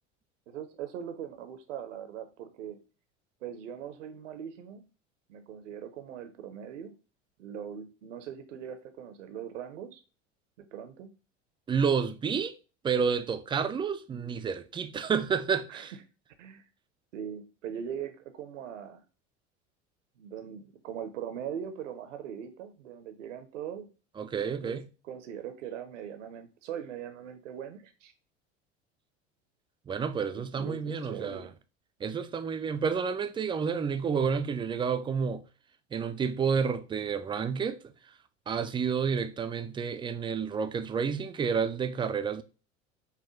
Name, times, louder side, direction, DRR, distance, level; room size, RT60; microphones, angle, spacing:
voice 1, 0.5-2.8 3.4-4.9 5.3-6.9 7.4-10.0 10.6-11.1 15.7-15.9 16.4-16.6 17.1-19.0 20.2-23.9 24.4-24.8 25.1-28.1 30.1-31.5, right 8 dB, 80° right, 0.7 m, -41 dB
voice 2, 11.7-12.5 12.8-15.9 24.2-24.9 29.9-31.5 32.0-35.4 35.9-37.8 38.5-42.4, right 6 dB, 15° right, 0.3 m, -30 dB
5.7 x 2.2 x 3.1 m
hypercardioid pair, 80°, 36 cm